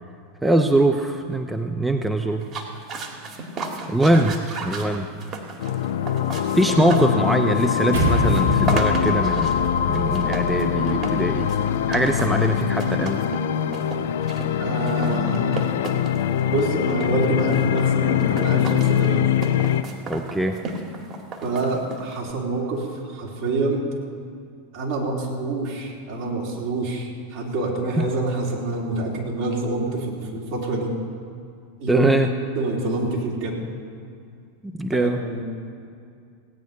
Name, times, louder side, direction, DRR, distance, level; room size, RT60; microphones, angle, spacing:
voice 1, 0.4-2.5 3.9-5.1 6.6-11.5 11.9-13.2 20.1-20.6 28.0-28.1 31.9-32.3 34.8-35.2, right 1 dB, 5° right, 5 dB, 0.7 m, -22 dB
sound 1, 2.4-22.3, right 3 dB, 40° right, 2.2 m, -34 dB
sound 2, 5.6-19.8, left 10 dB, 70° left, 0.6 m, -23 dB
sound 3, 7.9-12.5, left 1 dB, 75° right, 2.1 m, -28 dB
voice 2, 14.6-15.7 16.4-19.3 21.4-23.8 24.7-30.9 31.8-32.1 32.5-33.6 34.9-35.4, right 2 dB, 55° right, -2 dB, 3.4 m, -26 dB
17.0 x 9.3 x 5.5 m, 2.3 s
hypercardioid pair, 90°, 0 cm